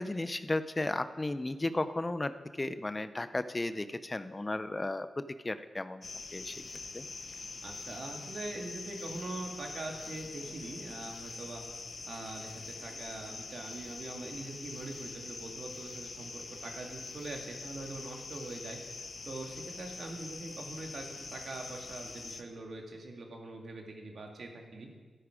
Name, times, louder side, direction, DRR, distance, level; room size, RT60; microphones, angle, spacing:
voice 1, 0.0-6.0 6.3-6.6 6.9-7.0, left 2 dB, 30° left, 12 dB, 0.6 m, -34 dB
sound 1, 6.0-22.4, left 4 dB, 55° left, 0.9 m, -44 dB
voice 2, 7.6-11.6 12.1-18.8 19.3-24.9, right 2 dB, 65° right, 2 dB, 2.1 m, -43 dB
12.5 x 9.6 x 5.0 m, 1.4 s
cardioid pair, 45°, 0 cm